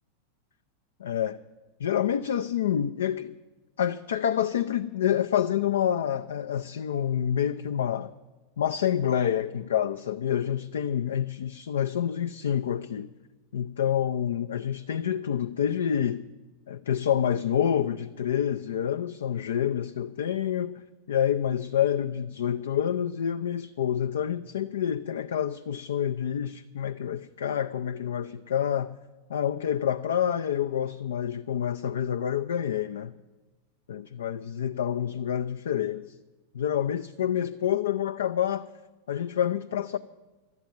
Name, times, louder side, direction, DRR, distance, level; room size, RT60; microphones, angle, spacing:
voice 1, 1.0-1.4 1.8-3.3 3.8-8.1 8.6-13.1 13.5-16.2 16.7-29.0 29.3-33.1 33.9-36.2 36.5-38.7 39.1-40.0, left 9 dB, 65° left, 0.4 m, -28 dB
12.0 x 8.0 x 9.4 m
figure-of-eight pair, 90°, 0 cm